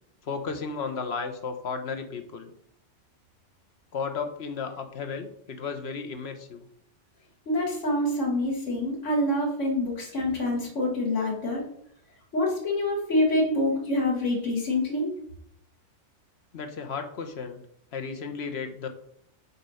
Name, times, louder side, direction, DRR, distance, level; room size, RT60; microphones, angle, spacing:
voice 1, 0.2-2.5 3.9-6.6 14.2-14.3 16.5-17.6 17.9-18.9, left 5 dB, 60° left, 7 dB, 1.1 m, -34 dB
voice 2, 7.5-11.7 12.3-15.1, left 1 dB, 80° left, -2 dB, 2.1 m, -26 dB
6.9 x 4.2 x 5.6 m, 0.70 s
omnidirectional pair, 1.2 m